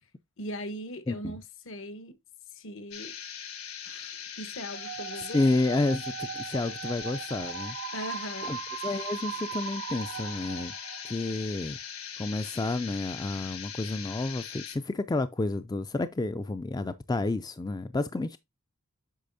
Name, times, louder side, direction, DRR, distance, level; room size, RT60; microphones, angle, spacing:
voice 1, 0.4-2.1 2.6-3.1 3.9-5.4 7.9-8.5, equal, 65° left, 1.1 m, -39 dB
voice 2, 1.1-1.4 5.2-7.7 8.4-8.6 8.8-10.7 11.0-11.8 12.2-18.4, left 2 dB, 20° left, 0.3 m, -30 dB
sound 1, 2.9-14.8, left 8 dB, 85° left, 1.8 m, -41 dB
sound 2, 4.7-11.5, right 8 dB, 55° right, 0.4 m, -39 dB
8.4 x 6.0 x 2.6 m
head